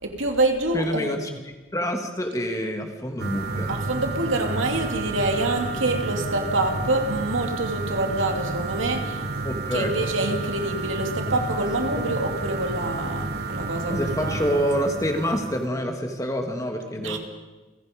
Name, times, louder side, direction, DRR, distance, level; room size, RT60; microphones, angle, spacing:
voice 1, 0.0-1.1 3.7-9.2 9.7-14.6 17.0-17.2, right 2 dB, 75° right, 3 dB, 2.9 m, -26 dB
voice 2, 0.7-3.8 9.4-9.9 13.9-17.2, equal, 15° left, 3 dB, 2.4 m, -27 dB
sound 1, 3.2-15.7, right 3 dB, 55° right, 1.5 m, -30 dB
29.5 x 17.0 x 5.3 m, 1.2 s
head